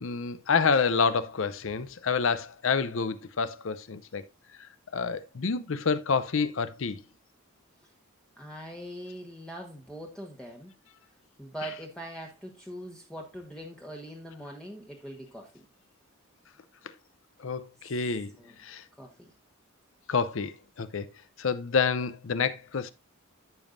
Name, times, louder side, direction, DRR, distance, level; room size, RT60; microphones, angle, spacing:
voice 1, 0.0-4.2 4.9-7.0 17.4-18.3 18.6-18.8 20.1-21.1 21.4-22.9, left 5 dB, 65° left, 0.6 m, -28 dB
voice 2, 8.4-10.7 11.4-15.6 18.4-18.6 19.0-19.3, right 1 dB, 5° left, 1.1 m, -42 dB
14.0 x 5.3 x 2.6 m
head